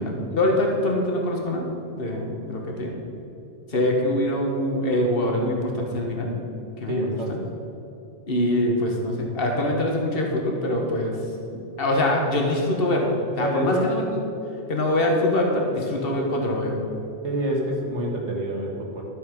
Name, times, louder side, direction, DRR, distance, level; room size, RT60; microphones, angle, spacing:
voice 1, 0.0-1.7 2.0-2.9 3.7-6.4 6.8-7.4 8.3-11.2 11.8-14.2 14.7-16.8, left 1 dB, 55° left, 0 dB, 1.7 m, -24 dB
voice 2, 6.9-7.4 13.4-13.9 17.2-19.1, equal, 75° right, -1 dB, 2.1 m, -27 dB
13.0 x 6.9 x 5.3 m, 2.9 s
omnidirectional pair, 1.2 m